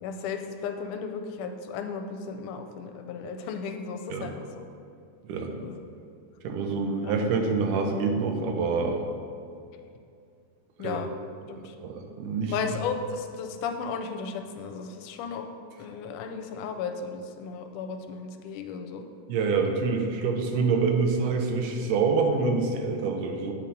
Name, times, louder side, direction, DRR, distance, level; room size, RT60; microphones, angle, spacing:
voice 1, 0.0-4.7 5.6-5.8 6.9-7.1 10.8-11.1 11.5-11.8 12.5-15.5 15.8-19.0, left 5 dB, 80° left, 6 dB, 2.0 m, -35 dB
voice 2, 5.2-5.6 6.4-9.0 10.8-11.0 11.8-12.5 19.3-23.5, right 4 dB, 80° right, 4 dB, 2.2 m, -26 dB
8.4 x 4.4 x 5.2 m, 2.4 s
omnidirectional pair, 3.7 m